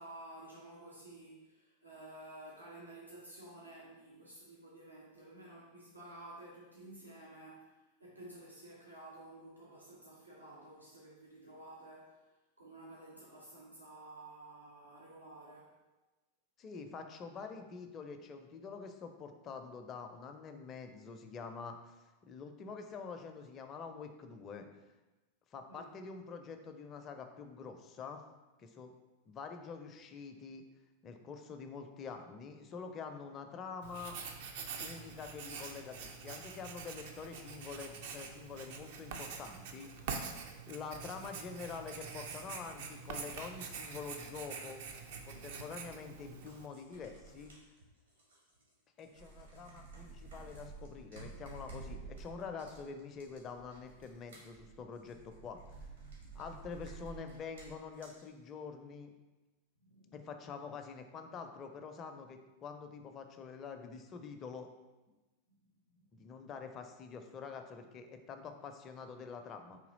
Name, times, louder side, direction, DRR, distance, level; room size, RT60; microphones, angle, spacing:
voice 1, 0.0-12.2 12.6-15.8 25.7-25.9 41.1-41.3 59.8-60.2 65.9-66.0, right 1 dB, 90° right, -6 dB, 0.7 m, -52 dB
voice 2, 16.6-22.0 22.2-24.7 25.5-28.2 28.6-28.9 29.3-30.6 31.0-34.2 34.8-40.3 40.7-44.8 45.2-47.5 49.0-55.9 56.3-59.1 60.1-64.7 66.1-69.8, left 5 dB, 30° left, 6 dB, 0.4 m, -46 dB
Writing, 33.8-46.7, right 5 dB, 50° right, 0.4 m, -45 dB
sound 1, 45.3-45.4 46.3-48.7 49.0-58.2, right 3 dB, 70° right, 1.4 m, -51 dB
3.8 x 2.9 x 3.9 m, 1.1 s
figure-of-eight pair, 90°, 0 cm